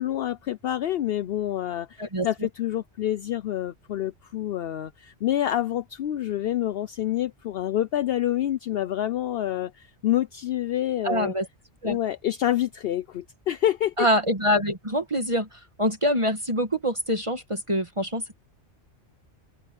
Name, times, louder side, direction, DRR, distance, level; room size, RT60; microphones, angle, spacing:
voice 1, 0.0-11.3 11.8-14.1, left 12 dB, 65° left, 0.8 m, -27 dB
voice 2, 11.0-11.5 11.8-12.0 14.0-15.5 15.8-18.4, equal, 30° right, 1.6 m, -25 dB
omnidirectional pair, 1.1 m